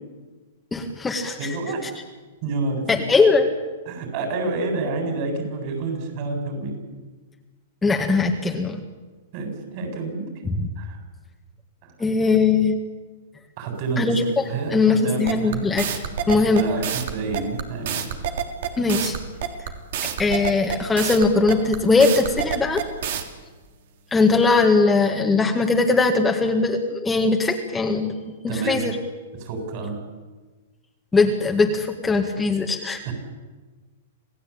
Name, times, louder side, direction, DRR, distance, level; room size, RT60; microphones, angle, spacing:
voice 1, 0.7-1.4 2.9-3.5 7.8-8.8 10.4-10.7 12.0-12.7 14.0-14.2 14.7-15.9 16.3-16.6 18.8-19.2 20.2-22.8 24.1-28.1 28.4-29.0 31.1-33.0, left 3 dB, 10° left, 2 dB, 2.0 m, -20 dB
voice 2, 1.4-1.8 2.4-3.0 3.9-6.8 9.3-10.3 10.8-11.0 11.8-12.1 13.6-15.7 16.5-18.0 28.5-28.8 29.4-30.0 33.0-33.1, right 3 dB, 45° right, 4 dB, 8.0 m, -28 dB
sound 1, 15.3-23.2, right 9 dB, 65° right, 3.1 m, -27 dB
27.0 x 17.0 x 8.8 m, 1.3 s
hypercardioid pair, 140°, 0 cm